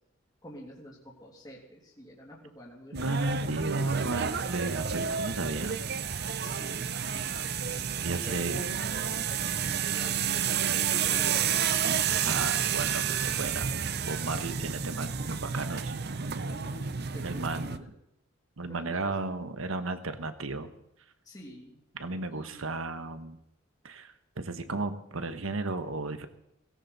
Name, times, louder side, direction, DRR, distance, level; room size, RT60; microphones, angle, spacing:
voice 1, 0.4-3.3 5.7-5.9 6.4-6.9 8.0-11.5 14.3-14.7 16.5-17.9 18.7-19.3 21.2-21.8 22.3-22.8, equal, 20° left, -3 dB, 3.0 m, -48 dB
voice 2, 2.9-5.8 8.0-8.6 12.2-13.7 14.0-15.9 16.3-16.5 17.2-17.9 18.6-20.7 21.9-23.4 23.8-26.3, right 3 dB, 85° right, 10 dB, 1.3 m, -34 dB
sound 1, 3.0-17.8, right 7 dB, 50° right, 0.7 m, -30 dB
18.0 x 16.5 x 4.2 m, 0.80 s
head